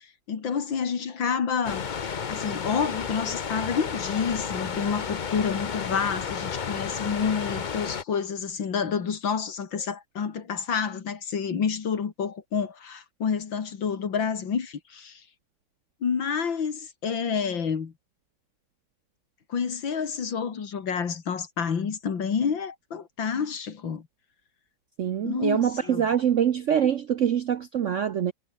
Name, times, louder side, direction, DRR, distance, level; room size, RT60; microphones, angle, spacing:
voice 1, 0.0-15.2 16.0-17.9 19.5-24.1 25.2-26.1, left 6 dB, 75° left, 2.9 m, -29 dB
sound 1, 1.6-8.0, left 6 dB, 50° left, 0.5 m, -32 dB
voice 2, 25.0-28.3, right 9 dB, 65° right, 0.7 m, -24 dB
omnidirectional pair, 2.1 m